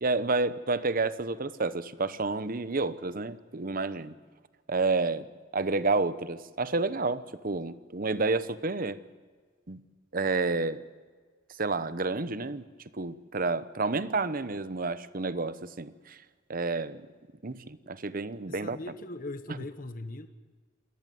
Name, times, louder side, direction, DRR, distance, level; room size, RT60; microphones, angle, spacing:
voice 1, 0.0-4.1 4.7-5.3 5.5-9.0 9.7-9.8 10.1-10.8 11.6-12.6 12.9-16.2 16.5-17.1 17.4-18.8, right 3 dB, 45° right, 15 dB, 0.9 m, -30 dB
voice 2, 18.5-20.3, left 2 dB, 45° left, 10 dB, 1.1 m, -40 dB
28.5 x 14.0 x 9.3 m, 1.5 s
head